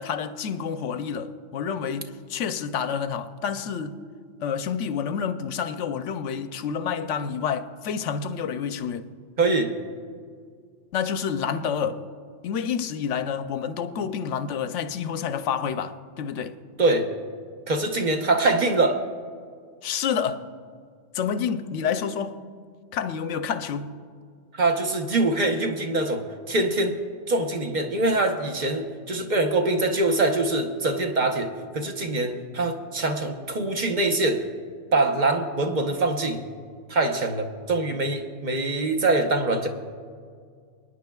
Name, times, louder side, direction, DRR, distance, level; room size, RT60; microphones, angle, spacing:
voice 1, 0.0-4.0 4.4-9.1 10.9-12.0 12.4-16.6 19.8-20.5 21.1-22.4 22.9-23.9, left 7 dB, 85° left, 1.0 m, -29 dB
voice 2, 9.4-9.7 16.8-17.1 17.7-19.0 24.5-27.0 27.3-34.4 34.9-36.4 36.9-39.7, right 2 dB, 40° right, 1.0 m, -24 dB
28.0 x 9.8 x 2.3 m
omnidirectional pair, 1.2 m